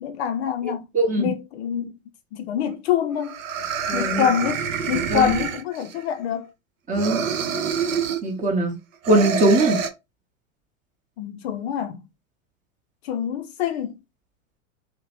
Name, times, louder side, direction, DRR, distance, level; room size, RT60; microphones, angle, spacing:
voice 1, 0.0-0.8 1.2-1.9 2.3-3.4 3.9-6.5 11.2-12.0 13.0-13.9, left 9 dB, 50° left, 0.5 m, -25 dB
voice 2, 0.9-1.3 3.9-4.3 5.1-5.4 6.9-7.2 8.2-8.8 9.1-9.8, right 2 dB, 20° right, 0.8 m, -21 dB
sound 1, 2.7-2.8 3.2-6.0 6.9-8.3 9.0-9.9, right 6 dB, 70° right, 0.6 m, -27 dB
2.7 x 2.0 x 2.9 m
figure-of-eight pair, 95°, 41 cm